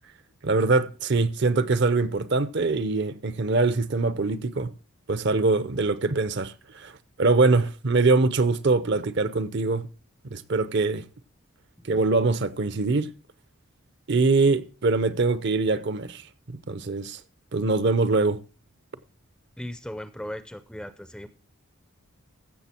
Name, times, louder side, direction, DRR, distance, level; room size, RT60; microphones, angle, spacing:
voice 1, 0.4-4.7 5.1-6.9 7.2-9.8 10.3-11.0 11.9-13.1 14.1-16.2 16.5-17.2 17.5-18.4, right 3 dB, 50° right, 0.7 m, -23 dB
voice 2, 19.6-21.3, equal, 5° left, 0.5 m, -37 dB
15.0 x 6.6 x 4.4 m
head